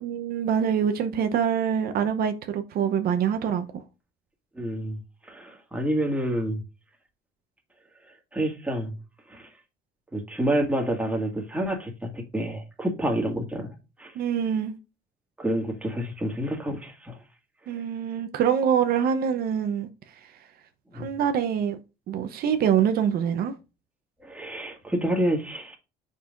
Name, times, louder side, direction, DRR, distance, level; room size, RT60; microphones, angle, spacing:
voice 1, 0.0-3.8 14.1-14.7 17.7-20.3 20.9-21.8 22.1-23.5, right 8 dB, 65° right, 0.8 m, -25 dB
voice 2, 4.6-5.0 5.3-6.6 8.3-8.9 9.3-9.5 10.1-13.7 14.0-14.1 15.4-17.2 20.9-21.1 24.2-25.8, right 1 dB, 10° right, 1.8 m, -28 dB
7.2 x 5.5 x 2.5 m
cardioid pair, 110°, 17 cm